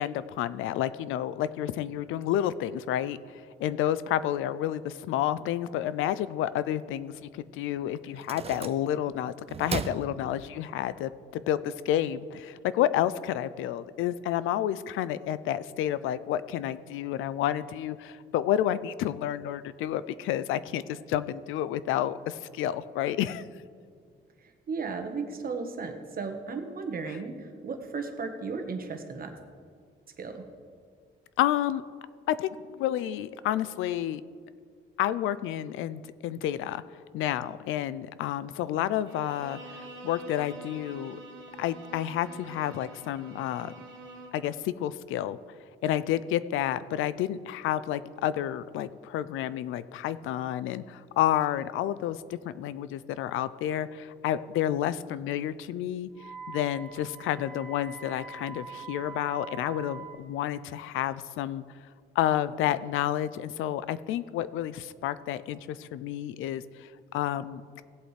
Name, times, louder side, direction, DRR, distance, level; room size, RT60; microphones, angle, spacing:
voice 1, 0.0-9.3 9.6-23.4 31.4-31.8 32.3-34.2 35.0-36.8 37.1-41.2 41.6-43.7 44.3-45.4 45.8-56.1 56.5-61.6 62.2-67.8, left 11 dB, 90° left, 16 dB, 0.4 m, -30 dB
sound 1, 8.1-9.1 9.5-10.8, right 6 dB, 30° right, 0.5 m, -37 dB
voice 2, 24.4-29.3 30.2-30.4, right 4 dB, 45° right, 5 dB, 1.3 m, -35 dB
Bowed string instrument, 39.1-44.5, right 2 dB, 70° right, 1.5 m, -46 dB
Wind instrument woodwind instrument, 56.2-60.2, right 5 dB, ahead, 2.0 m, -43 dB
17.0 x 7.8 x 3.3 m, 2.1 s
cardioid pair, 90°, 20 cm